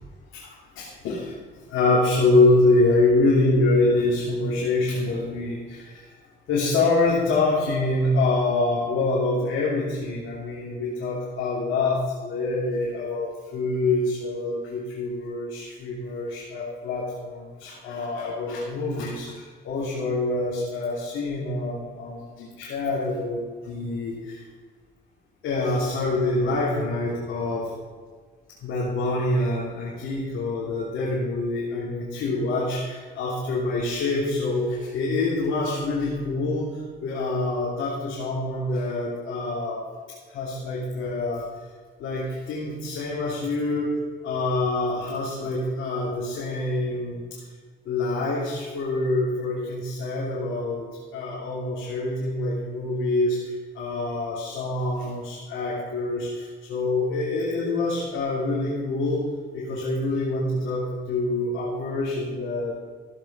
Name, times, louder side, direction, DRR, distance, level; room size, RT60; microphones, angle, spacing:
voice 1, 0.7-1.3 1.7-6.0 6.5-24.4 25.4-27.7 28.6-36.7 37.0-39.8 40.3-41.5 42.0-43.9 44.2-47.2 47.8-50.9 51.1-53.4 53.7-59.2 59.5-62.7, left 2 dB, 85° left, -6 dB, 3.2 m, -25 dB
15.0 x 8.4 x 5.6 m, 1.6 s
cardioid pair, 90°, 20 cm